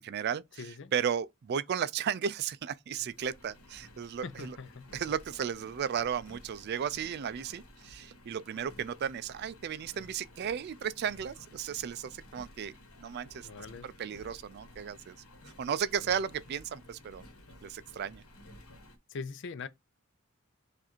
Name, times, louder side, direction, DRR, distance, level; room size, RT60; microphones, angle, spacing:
voice 1, 0.0-0.6 0.9-4.6 4.9-12.7 13.0-13.5 13.8-15.2 15.4-17.2 17.6-18.2, right 8 dB, 50° right, 0.3 m, -34 dB
voice 2, 0.6-0.9 4.2-4.9 13.4-13.9 19.1-19.7, left 4 dB, 55° left, 0.5 m, -42 dB
Engine, 2.9-19.0, left 1 dB, 90° left, 1.2 m, -54 dB
4.7 x 2.6 x 4.3 m
head